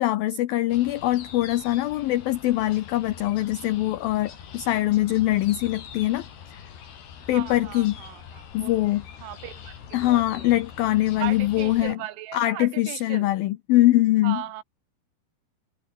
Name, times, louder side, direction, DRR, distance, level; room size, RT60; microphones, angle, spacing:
voice 1, 0.0-6.6 7.3-8.0 8.5-9.1 9.9-12.0 12.3-14.4, left 15 dB, 80° left, 2.1 m, -23 dB
sound 1, 0.7-12.0, left 8 dB, 65° left, 5.5 m, -44 dB
voice 2, 7.3-8.7 9.2-10.5 11.2-13.3 14.2-14.6, right 15 dB, 90° right, 3.7 m, -37 dB
omnidirectional pair, 5.3 m